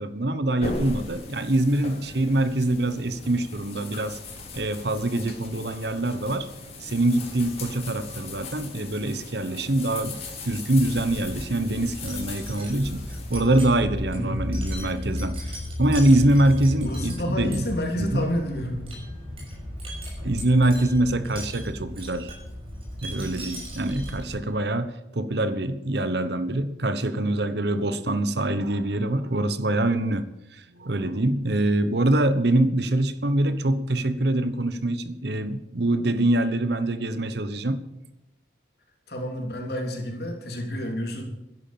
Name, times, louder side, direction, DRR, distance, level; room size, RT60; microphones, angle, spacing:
voice 1, 0.0-4.2 4.5-6.5 6.8-10.2 10.4-15.5 15.8-17.6 18.0-18.3 20.2-22.4 23.0-30.3 30.5-37.8, right 1 dB, 60° right, 12 dB, 1.1 m, -24 dB
sound 1, 0.6-13.4, left 3 dB, 35° left, 3.7 m, -39 dB
Wind chime, 10.7-24.5, equal, 30° right, 6.0 m, -35 dB
voice 2, 14.1-14.5 16.8-18.9 39.1-41.2, equal, 55° left, 1 dB, 3.5 m, -29 dB
13.0 x 11.0 x 7.7 m, 0.95 s
head